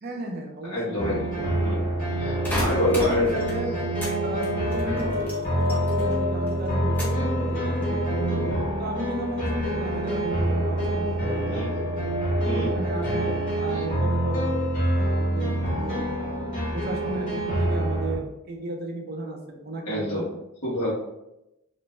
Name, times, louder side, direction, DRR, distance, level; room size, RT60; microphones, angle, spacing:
voice 1, 0.0-0.7 1.0-1.6 2.8-3.7 4.2-11.9 12.5-14.6 15.0-20.3, right 1 dB, 45° right, 2 dB, 0.4 m, -34 dB
voice 2, 0.6-1.2 1.6-1.8 2.2-3.3 11.4-11.7 12.4-12.7 13.7-13.8 19.8-20.3 20.6-20.9, left 1 dB, 85° left, -8 dB, 1.0 m, -27 dB
sound 1, 1.0-18.2, right 1 dB, 40° left, 0.9 m, -27 dB
sound 2, 2.2-14.6, left 3 dB, 65° left, 1.0 m, -34 dB
sound 3, 2.4-4.2 4.4-6.2 6.5-7.3 7.8-8.2, left 1 dB, 10° left, 0.5 m, -33 dB
2.5 x 2.1 x 3.1 m, 0.89 s
head